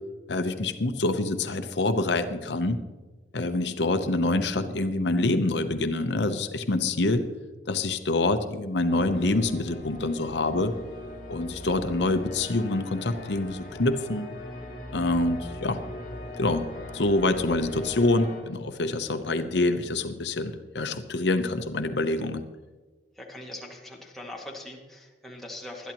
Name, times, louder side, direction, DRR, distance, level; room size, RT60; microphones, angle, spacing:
voice 1, 0.3-2.8 3.3-7.2 7.7-10.7 11.3-14.3 14.9-15.8 16.4-16.7 16.9-22.4, left 2 dB, 75° left, 8 dB, 0.8 m, -26 dB
sound 1, 8.9-18.4, left 1 dB, 50° left, 3.2 m, -40 dB
voice 2, 23.1-25.9, left 1 dB, ahead, -3 dB, 2.1 m, -41 dB
20.5 x 12.5 x 3.0 m, 1.3 s
head